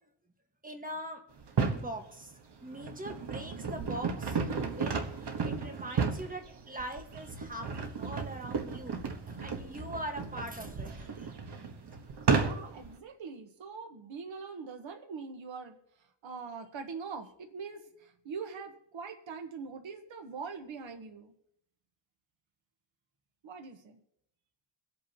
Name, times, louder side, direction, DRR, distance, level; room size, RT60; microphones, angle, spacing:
voice 1, 0.6-1.2 1.7-2.3 2.6-9.0 9.2-11.3, right 1 dB, 20° right, 4 dB, 1.5 m, -42 dB
sound 1, 1.4-1.9 2.5-12.9, right 5 dB, 60° right, 1.3 m, -33 dB
voice 2, 12.3-21.3 23.4-24.0, right 5 dB, 85° right, 5 dB, 1.3 m, -43 dB
24.0 x 8.4 x 2.9 m, 0.75 s
wide cardioid pair, 140°, 45 cm